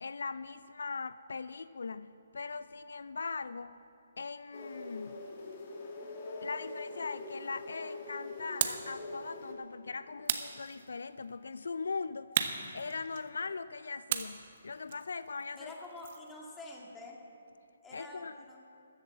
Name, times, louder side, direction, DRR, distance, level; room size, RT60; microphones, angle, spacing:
voice 1, 0.0-3.8 4.2-5.2 6.4-12.3 12.7-15.7 17.9-18.3, left 4 dB, 70° left, 15 dB, 0.3 m, -40 dB
sound 1, 4.5-9.5, left 2 dB, 40° left, 2.0 m, -43 dB
sound 2, 8.6-8.9 10.3-11.2 12.3-13.5 14.1-16.3, right 8 dB, 45° right, 0.9 m, -35 dB
voice 2, 15.6-17.2 17.8-18.6, left 2 dB, 10° left, -1 dB, 1.8 m, -47 dB
13.5 x 8.2 x 7.4 m, 2.8 s
figure-of-eight pair, 145°, 0 cm